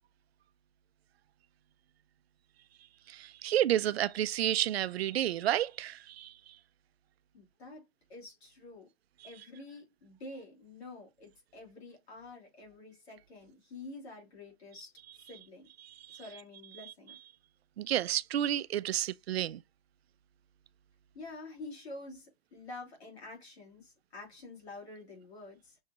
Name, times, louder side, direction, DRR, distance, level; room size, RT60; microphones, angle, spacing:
voice 1, 3.1-6.3 15.8-16.2 17.8-19.6, right 12 dB, 80° right, 0.5 m, -31 dB
voice 2, 7.3-8.9 9.2-14.9 15.2-15.7 16.1-17.2 21.1-25.8, left 2 dB, 85° left, 2.8 m, -48 dB
6.3 x 2.8 x 2.4 m
hypercardioid pair, 160°, 31 cm